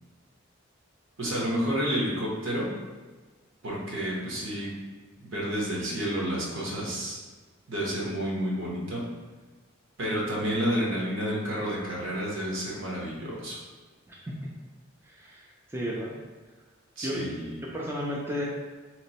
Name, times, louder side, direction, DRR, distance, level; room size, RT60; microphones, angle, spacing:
voice 1, 1.2-2.7 3.6-4.7 5.2-7.2 7.7-9.1 10.0-13.6 17.0-17.6, equal, 65° right, -4 dB, 0.9 m, -30 dB
voice 2, 15.0-16.1 17.0-17.3 17.6-18.4, equal, 10° right, -4 dB, 0.3 m, -33 dB
3.0 x 2.1 x 4.0 m, 1.3 s
head